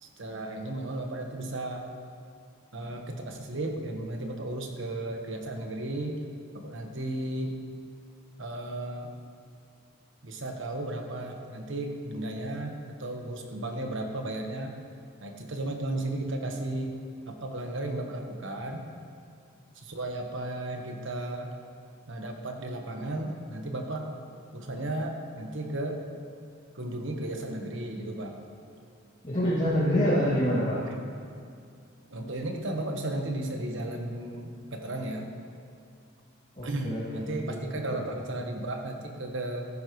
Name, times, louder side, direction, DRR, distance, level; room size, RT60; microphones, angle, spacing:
voice 1, 0.0-1.9 2.7-6.2 6.5-7.5 8.4-9.1 10.2-14.8 15.2-17.0 17.3-18.9 19.7-21.5 22.1-24.1 24.5-26.0 26.7-28.4 30.9-31.0 32.1-35.3 36.6-39.7, right 1 dB, 65° right, 3 dB, 1.3 m, -34 dB
voice 2, 29.2-30.8 36.6-37.5 38.0-38.1, equal, 30° left, -11 dB, 2.3 m, -26 dB
14.5 x 11.0 x 3.1 m, 2.3 s
head